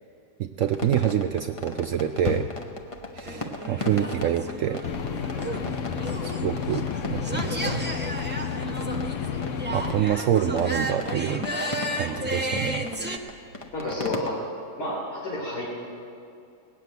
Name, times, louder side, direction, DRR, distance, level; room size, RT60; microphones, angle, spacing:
voice 1, 0.4-2.5 3.1-4.8 6.2-7.9 9.7-11.5 11.9-12.9, right 9 dB, 70° right, 6 dB, 0.8 m, -26 dB
sound 1, 0.6-14.3, left 2 dB, 25° left, 0.8 m, -37 dB
sound 2, 3.2-13.2, right 1 dB, 15° right, 0.4 m, -33 dB
sound 3, 4.8-10.0, left 7 dB, 60° left, 0.9 m, -31 dB
voice 2, 13.7-14.4 14.8-15.7, left 1 dB, 85° left, -7 dB, 3.7 m, -30 dB
19.0 x 7.5 x 9.4 m, 2.5 s
omnidirectional pair, 1.7 m